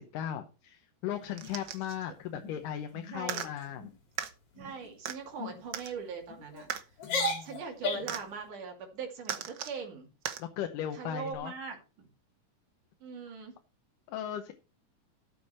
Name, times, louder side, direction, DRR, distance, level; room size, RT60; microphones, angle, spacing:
voice 1, 0.0-3.9 7.1-7.6 10.4-11.5 14.1-14.5, left 10 dB, 80° left, 6 dB, 2.5 m, -37 dB
sound 1, 1.3-1.9 2.3-2.5 2.9-3.2 3.6-3.9 4.5-4.9 5.4-5.6 6.3-6.6 7.0-8.2, left 2 dB, 50° left, 3.2 m, -35 dB
sound 2, 1.4-2.0 3.2-3.5 4.2-4.3 5.0-5.2 5.7-5.9 6.7-6.8 8.1-8.2 9.2-9.8 10.2-10.4 11.3-11.4, right 9 dB, 90° right, 1.1 m, -36 dB
voice 2, 3.1-3.5 4.6-6.7 7.4-10.1 10.9-12.1 13.0-13.5, right 5 dB, 70° right, 2 dB, 3.9 m, -41 dB
13.0 x 8.3 x 4.3 m, 0.32 s
omnidirectional pair, 3.8 m